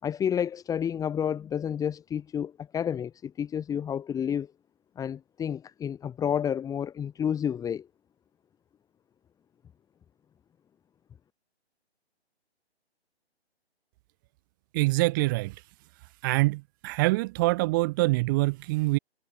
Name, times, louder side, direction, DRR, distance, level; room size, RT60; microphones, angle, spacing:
voice 1, 0.0-4.5 5.0-7.9, left 8 dB, 10° left, 5.6 m, -30 dB
voice 2, 14.7-15.5 16.2-19.0, right 23 dB, 20° right, 1.0 m, -25 dB
figure-of-eight pair, 140°, 32 cm